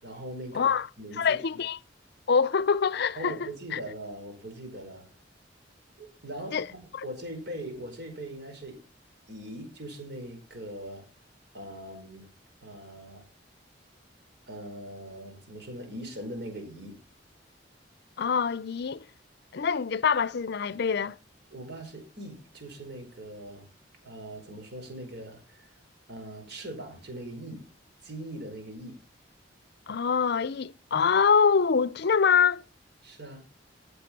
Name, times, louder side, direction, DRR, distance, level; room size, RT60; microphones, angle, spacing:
voice 1, 0.0-1.2 3.2-5.1 6.0-8.8 9.3-11.1 11.5-12.3 12.6-13.3 14.5-17.0 21.5-23.7 24.0-25.8 26.1-27.7 28.0-29.0 33.0-33.4, right 1 dB, 65° right, 5.0 m, -41 dB
voice 2, 0.5-0.9 1.2-1.8 2.3-3.8 6.5-6.7 6.9-7.0 18.2-19.0 19.5-21.2 29.9-32.6, left 6 dB, 60° left, 0.5 m, -25 dB
15.0 x 6.8 x 6.0 m
head